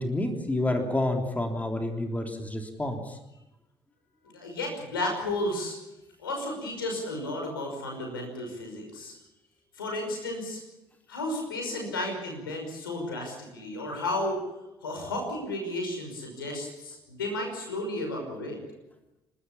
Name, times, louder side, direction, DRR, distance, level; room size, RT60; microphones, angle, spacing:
voice 1, 0.0-3.1, left 1 dB, 15° left, 3 dB, 3.5 m, -29 dB
voice 2, 4.2-5.8 6.2-9.1 9.7-10.6 11.1-14.4 14.8-18.6, left 1 dB, 80° left, 2 dB, 5.6 m, -33 dB
30.0 x 13.0 x 8.7 m, 0.97 s
figure-of-eight pair, 45°, 12 cm